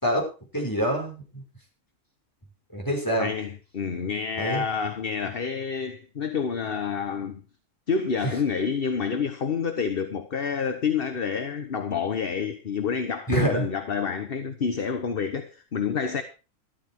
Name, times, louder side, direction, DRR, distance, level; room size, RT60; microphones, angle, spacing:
voice 1, 0.0-1.4 2.7-3.3 4.4-4.6 8.2-8.3 13.3-13.7, right 1 dB, 15° left, 5.4 m, -26 dB
voice 2, 3.2-7.4 7.9-16.2, left 6 dB, 40° left, 1.2 m, -28 dB
13.5 x 13.0 x 4.5 m
omnidirectional pair, 1.6 m